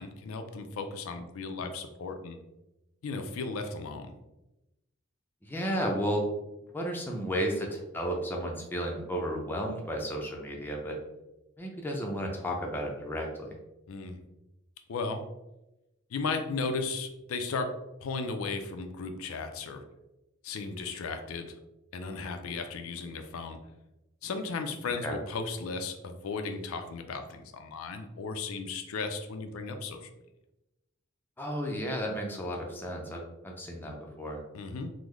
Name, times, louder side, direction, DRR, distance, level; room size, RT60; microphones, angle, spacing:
voice 1, 0.0-2.4 3.0-4.1 13.9-14.2 14.9-15.2 16.1-17.7 18.0-19.8 20.4-21.6 21.9-23.6 24.2-30.1 34.5-34.9, left 4 dB, 80° left, 6 dB, 0.4 m, -35 dB
voice 2, 5.4-6.3 6.7-11.0 11.6-13.6 25.0-25.2 31.4-34.4, equal, 10° left, 0 dB, 0.4 m, -33 dB
3.6 x 2.0 x 3.1 m, 0.95 s
head